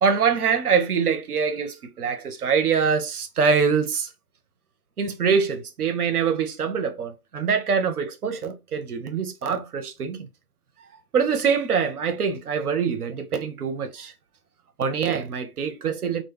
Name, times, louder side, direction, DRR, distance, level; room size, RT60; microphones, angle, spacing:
voice 1, 0.0-4.1 5.0-10.3 11.1-14.1 14.8-16.2, right 6 dB, 80° right, 0.6 m, -24 dB
2.2 x 2.0 x 3.1 m
figure-of-eight pair, 160°, 45 cm